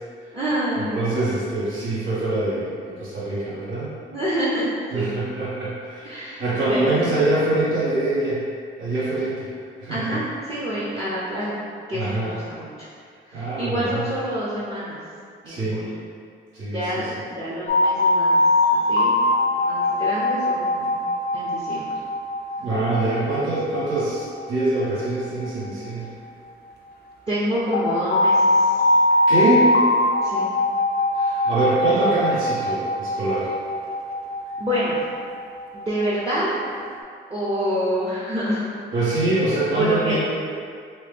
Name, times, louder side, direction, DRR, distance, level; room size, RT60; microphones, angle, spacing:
voice 1, 0.3-1.4 4.1-5.2 6.0-6.4 6.7-7.2 9.9-11.6 11.9-12.9 13.3-15.0 15.4-15.9 16.7-18.3 18.7-19.2 19.6-20.8 21.3-21.9 27.3-28.8 30.2-30.5 34.6-35.0 35.7-36.5 37.3-38.7 39.7-40.2, equal, 30° right, -10 dB, 0.7 m, -27 dB
voice 2, 0.9-3.9 4.9-8.4 8.8-9.5 9.8-10.2 11.9-12.4 13.3-14.0 15.5-15.8 16.5-17.2 22.6-26.1 29.3-29.7 31.1-33.5 38.9-40.2, right 2 dB, 85° right, -9 dB, 1.2 m, -24 dB
sound 1, 17.7-26.5 27.7-36.9, left 1 dB, 55° left, 0.5 m, -22 dB
3.0 x 2.2 x 3.4 m, 2.2 s
cardioid pair, 90°, 20 cm